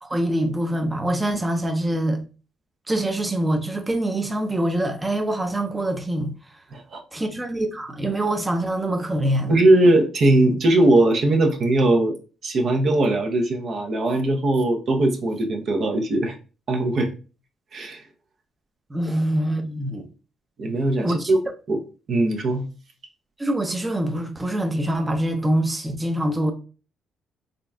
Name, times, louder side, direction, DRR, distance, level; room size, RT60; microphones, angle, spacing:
voice 1, 0.0-2.2 2.9-6.6 7.1-9.5 18.9-20.1 21.0-21.3 23.4-26.5, right 1 dB, 15° right, 0.6 m, -24 dB
voice 2, 9.5-12.1 12.4-16.3 16.7-17.1 17.7-18.0 20.6-21.4 21.7-21.8 22.1-22.7, right 2 dB, 60° right, 0.8 m, -20 dB
3.8 x 3.4 x 2.3 m
cardioid pair, 90°, 0 cm